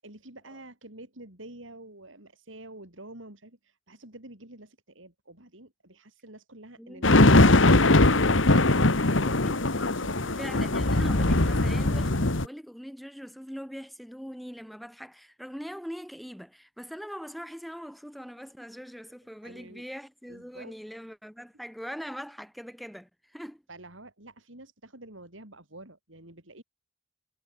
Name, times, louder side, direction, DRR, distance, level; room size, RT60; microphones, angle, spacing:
voice 1, 0.0-8.1 8.5-9.4 9.7-10.6 19.4-19.9 20.3-20.7 23.7-26.6, right 1 dB, 75° right, 7.2 m, -48 dB
sound 1, 7.0-12.4, left 2 dB, 70° left, 1.9 m, -21 dB
voice 2, 9.2-9.6 10.4-23.6, equal, ahead, 5.6 m, -41 dB
head